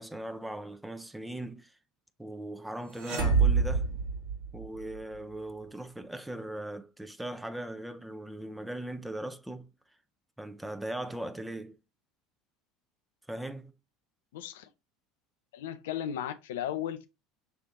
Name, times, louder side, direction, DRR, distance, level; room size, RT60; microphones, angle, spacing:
voice 1, 0.0-1.7 2.2-3.9 4.5-9.7 10.4-11.8 13.3-13.7, right 1 dB, 5° right, 0.6 m, -39 dB
sound 1, 2.9-4.9, right 5 dB, 70° right, 1.5 m, -26 dB
voice 2, 14.3-14.7 15.5-17.1, left 10 dB, 70° left, 0.4 m, -35 dB
5.7 x 3.2 x 2.7 m
figure-of-eight pair, 70°, 0 cm